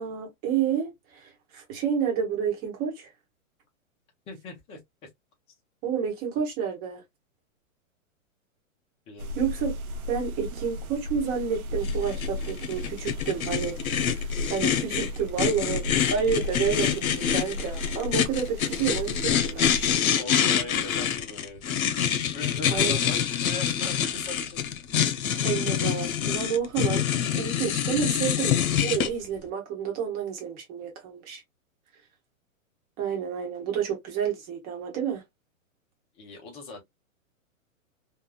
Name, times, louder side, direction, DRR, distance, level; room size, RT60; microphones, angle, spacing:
voice 1, 0.0-3.1 5.8-7.0 9.3-9.8 10.1-14.2 14.5-19.8 22.7-23.0 25.4-27.1 27.4-31.4 33.0-35.2, right 7 dB, 20° right, 1.1 m, -30 dB
voice 2, 4.3-5.1 9.1-9.5 20.1-21.9 22.2-24.6 36.1-36.8, left 3 dB, 15° left, 0.7 m, -40 dB
sound 1, 9.2-20.0, left 2 dB, 90° right, 0.7 m, -35 dB
sound 2, 11.8-29.1, left 9 dB, 85° left, 0.9 m, -26 dB
3.5 x 2.2 x 2.2 m
hypercardioid pair, 155°, 41 cm